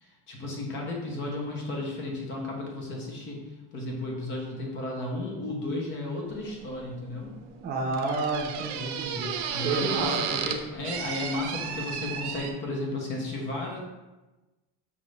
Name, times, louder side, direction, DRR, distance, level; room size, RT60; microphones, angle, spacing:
voice 1, 0.0-3.4 3.7-7.3 9.5-13.8, left 2 dB, 35° left, 0 dB, 0.8 m, -34 dB
sound 1, 6.3-12.5, right 7 dB, 85° right, 0.6 m, -34 dB
voice 2, 7.6-9.3 9.6-10.2, right 3 dB, 30° right, -3 dB, 0.6 m, -30 dB
5.2 x 2.5 x 3.2 m, 1.1 s
cardioid pair, 165°, 33 cm